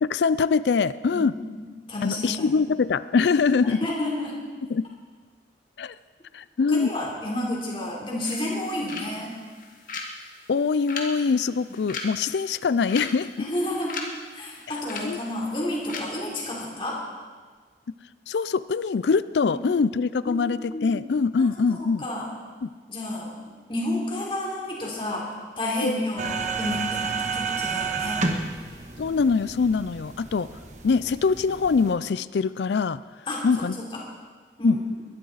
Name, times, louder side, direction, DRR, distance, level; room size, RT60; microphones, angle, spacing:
voice 1, 0.0-1.3 2.0-3.8 4.7-4.8 5.8-5.9 6.3-6.9 10.5-13.3 15.0-15.2 18.3-22.0 22.6-22.7 25.8-25.9 29.0-30.5 30.8-33.0 33.4-33.8 34.6-34.8, left 5 dB, 80° left, 16 dB, 0.4 m, -23 dB
voice 2, 1.1-2.6 3.6-4.4 6.7-9.3 13.4-14.0 14.3-17.0 19.4-19.6 20.2-20.9 21.4-22.3 22.9-23.3 23.7-25.3 25.6-28.2 33.3-34.0 34.6-34.8, left 1 dB, 30° left, -4 dB, 3.5 m, -31 dB
sound 1, 8.2-16.0, left 3 dB, 50° left, 1.9 m, -39 dB
sound 2, 26.2-31.9, right 4 dB, 40° right, 1.4 m, -31 dB
22.0 x 12.5 x 4.1 m, 1.5 s
head